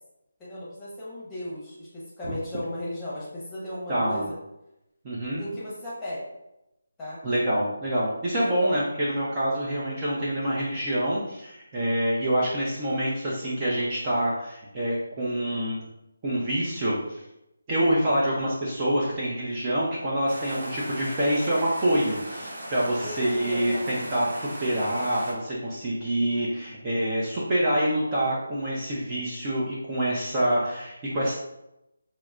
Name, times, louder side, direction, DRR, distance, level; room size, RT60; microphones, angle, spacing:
voice 1, 0.4-4.3 5.3-6.2 7.0-7.2 8.3-8.5 23.0-24.1, left 1 dB, 10° left, -9 dB, 0.9 m, -36 dB
voice 2, 3.9-4.3 5.0-5.4 7.2-15.8 16.2-17.2 17.7-31.3, right 1 dB, 20° right, -7 dB, 0.6 m, -26 dB
sound 1, 20.3-25.3, right 1 dB, 45° right, 1.5 m, -38 dB
5.6 x 2.0 x 2.4 m, 0.88 s
figure-of-eight pair, 170°, 0 cm